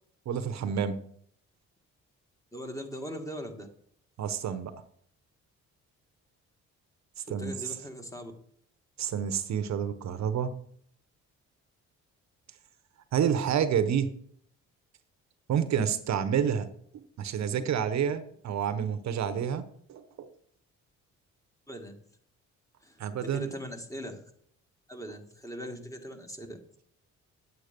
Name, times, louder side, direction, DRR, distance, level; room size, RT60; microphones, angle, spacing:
voice 1, 0.3-1.0 4.2-4.7 7.3-7.5 9.0-10.5 13.1-14.1 15.5-16.7 16.9-20.3 23.0-23.5, right 8 dB, 65° right, 11 dB, 0.9 m, -29 dB
voice 2, 2.5-3.7 7.2-8.3 21.7-22.0 22.8-24.2 24.9-26.6, equal, 10° left, 4 dB, 1.8 m, -40 dB
9.6 x 8.0 x 5.2 m, 0.64 s
cardioid pair, 90°, 30 cm